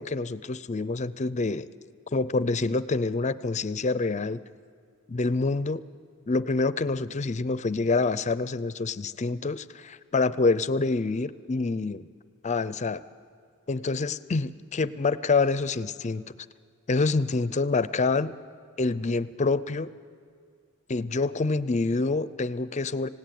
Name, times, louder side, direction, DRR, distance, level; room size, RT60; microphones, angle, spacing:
voice 1, 0.0-1.7 2.1-4.4 5.1-5.8 6.3-12.1 12.4-13.0 13.7-16.2 16.9-18.3 18.8-19.9 20.9-23.1, left 3 dB, 35° left, 15 dB, 0.5 m, -26 dB
25.5 x 17.5 x 9.3 m, 2.1 s
head